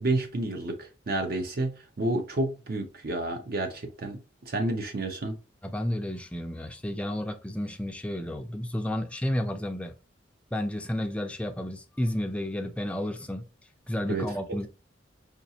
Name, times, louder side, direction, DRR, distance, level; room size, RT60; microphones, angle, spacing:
voice 1, 0.0-5.4 14.1-14.3, right 2 dB, 50° right, 0.6 m, -30 dB
voice 2, 5.6-9.9 10.5-13.4 13.9-14.7, left 1 dB, 5° left, 0.4 m, -31 dB
5.1 x 2.4 x 2.7 m
head